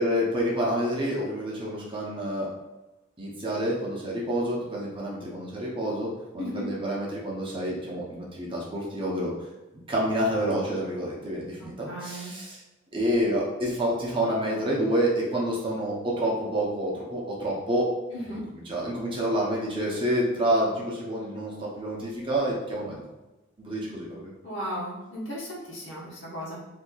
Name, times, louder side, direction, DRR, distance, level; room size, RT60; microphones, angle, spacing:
voice 1, 0.0-2.5 3.2-9.3 9.9-12.6 12.9-17.9 18.2-18.3 18.5-23.0 23.6-24.3, equal, 25° right, -5 dB, 0.8 m, -28 dB
voice 2, 6.4-6.7 11.8-12.3 18.1-18.4 24.4-26.6, equal, 60° left, -5 dB, 1.2 m, -35 dB
4.3 x 2.7 x 2.4 m, 1.1 s
head